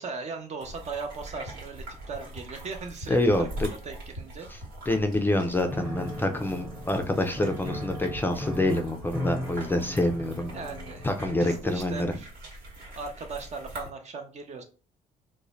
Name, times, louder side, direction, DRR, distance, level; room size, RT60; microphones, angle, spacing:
voice 1, 0.0-4.5 10.5-11.0 11.4-12.3 13.0-14.6, right 4 dB, 45° right, 5 dB, 0.6 m, -38 dB
sound 1, 0.6-13.9, right 1 dB, 90° right, 1.2 m, -43 dB
voice 2, 3.1-3.7 4.9-10.5 11.0-12.1, left 1 dB, 15° left, 5 dB, 0.4 m, -26 dB
Piano, 5.7-11.6, left 1 dB, 5° right, 0.7 m, -37 dB
2.5 x 2.1 x 3.0 m, 0.38 s
cardioid pair, 95°, 15 cm